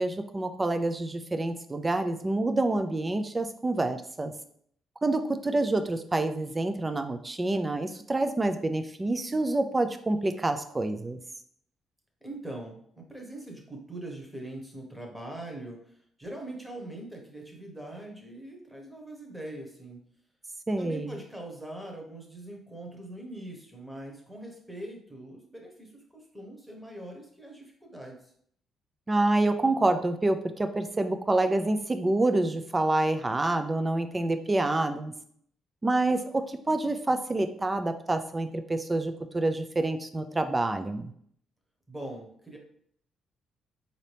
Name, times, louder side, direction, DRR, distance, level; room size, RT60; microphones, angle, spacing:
voice 1, 0.0-4.3 5.0-11.2 20.7-21.1 29.1-35.1 35.8-41.1, right 2 dB, 20° right, 8 dB, 0.4 m, -27 dB
voice 2, 12.2-20.0 20.8-28.2 41.9-42.6, right 1 dB, ahead, 0 dB, 1.1 m, -42 dB
4.0 x 2.7 x 3.4 m, 0.64 s
cardioid pair, 90°, 0 cm